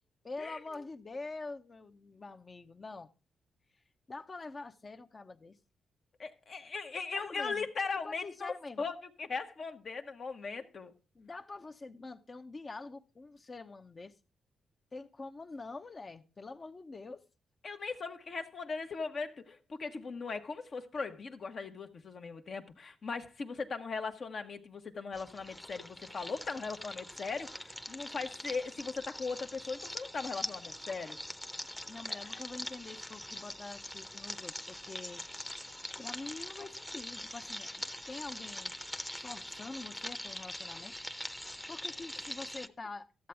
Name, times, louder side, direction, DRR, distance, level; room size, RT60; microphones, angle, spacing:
voice 1, 0.2-3.1 4.1-5.6 7.1-7.7 8.0-8.8 11.1-14.2 14.9-17.2 31.9-35.2 36.0-38.7 39.1-40.9 41.7-43.3, left 3 dB, 40° left, 0.8 m, -45 dB
voice 2, 6.2-10.9 17.6-31.2 32.1-32.2, left 4 dB, 55° left, 1.1 m, -39 dB
sound 1, 25.1-42.7, left 1 dB, 10° left, 0.8 m, -43 dB
13.0 x 7.7 x 3.4 m
supercardioid pair, 60°, 0 cm